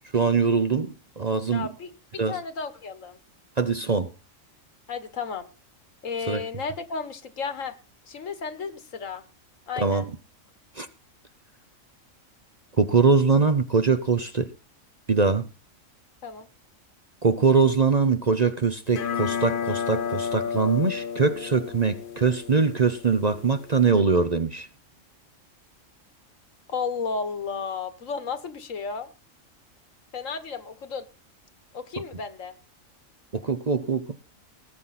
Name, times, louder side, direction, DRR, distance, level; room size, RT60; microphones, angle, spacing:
voice 1, 0.1-1.7 2.2-2.4 3.6-4.1 6.3-6.4 9.8-10.1 10.8-10.9 12.8-14.5 15.1-15.5 17.2-24.7 33.3-34.0, right 4 dB, 35° right, 0.8 m, -22 dB
voice 2, 1.5-3.2 4.9-5.5 6.0-7.8 8.1-9.2 9.7-10.1 16.2-16.5 26.7-29.1 30.1-31.0 31.7-32.5, left 5 dB, 70° left, 1.8 m, -33 dB
sound 1, 18.9-23.9, left 7 dB, 45° left, 0.8 m, -32 dB
19.5 x 9.2 x 4.2 m
omnidirectional pair, 1.4 m